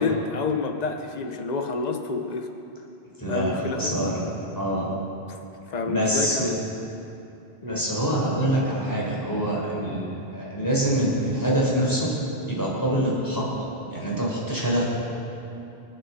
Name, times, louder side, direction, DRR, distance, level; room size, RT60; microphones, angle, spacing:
voice 1, 0.0-2.5 3.3-4.0 5.7-6.6 7.6-7.8, left 4 dB, 40° left, 5 dB, 1.1 m, -28 dB
voice 2, 3.2-4.3 4.5-4.9 5.7-6.5 7.6-10.0 10.3-12.1 12.5-13.6 13.9-14.8, right 1 dB, 20° left, -6 dB, 4.6 m, -25 dB
29.0 x 9.6 x 4.3 m, 2.7 s
omnidirectional pair, 1.1 m